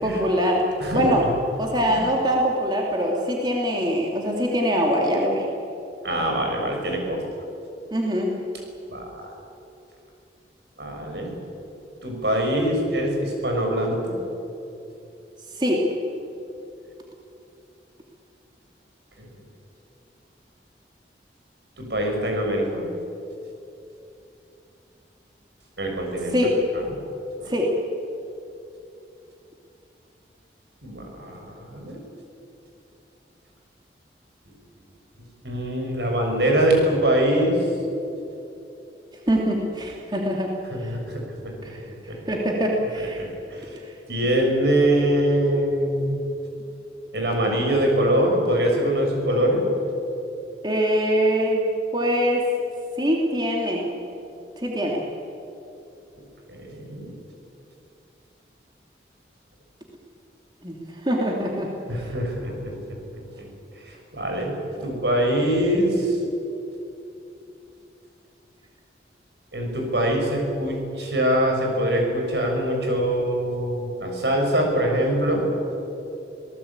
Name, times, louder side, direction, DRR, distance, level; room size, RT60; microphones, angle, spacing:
voice 1, 0.0-0.6 0.9-1.3 1.6-5.5 7.9-8.3 15.6-15.9 26.3-26.6 27.5-27.7 39.3-40.5 40.8-40.9 41.6-41.8 42.3-43.2 50.6-51.6 51.9-52.4 53.0-53.8 54.6-55.0 60.6-61.7 64.8-64.9, equal, 25° right, -1 dB, 2.7 m, -23 dB
voice 2, 0.8-1.3 1.9-2.0 6.0-7.2 8.9-9.3 10.8-11.3 12.0-14.2 21.8-22.9 25.8-26.3 30.8-32.0 35.4-37.5 40.7-41.0 43.2-43.3 43.5-43.6 44.1-46.2 47.1-49.6 56.5-57.1 61.9-62.7 64.1-64.6 64.8-66.2 69.5-75.5, right 1 dB, 75° right, 1 dB, 6.6 m, -23 dB
27.5 x 18.5 x 8.8 m, 2.8 s
head